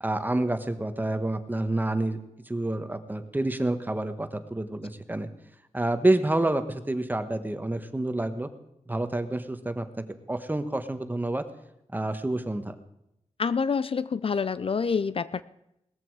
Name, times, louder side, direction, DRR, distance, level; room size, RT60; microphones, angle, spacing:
voice 1, 0.0-2.2 2.5-5.3 5.7-8.5 8.9-9.8 10.3-11.4 11.9-12.7, right 2 dB, 15° right, 9 dB, 1.2 m, -28 dB
voice 2, 13.4-15.4, left 5 dB, 50° left, 16 dB, 0.5 m, -27 dB
19.0 x 14.0 x 4.8 m, 0.84 s
wide cardioid pair, 120°, 12 cm